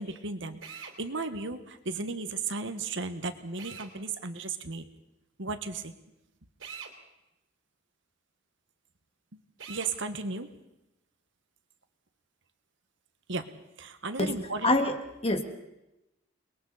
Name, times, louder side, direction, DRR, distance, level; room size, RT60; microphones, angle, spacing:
voice 1, 0.0-4.8 5.4-5.9 9.7-10.5 13.3-13.5 13.8-14.7, right 3 dB, 70° right, 9 dB, 1.5 m, -35 dB
Drill, 0.6-1.0 3.6-3.9 6.6-6.9 9.6-9.9, right 6 dB, 90° right, 3.3 m, -43 dB
voice 2, 14.2-15.0 15.2-15.4, left 2 dB, 30° left, 6 dB, 1.9 m, -26 dB
29.0 x 21.5 x 4.2 m, 0.93 s
head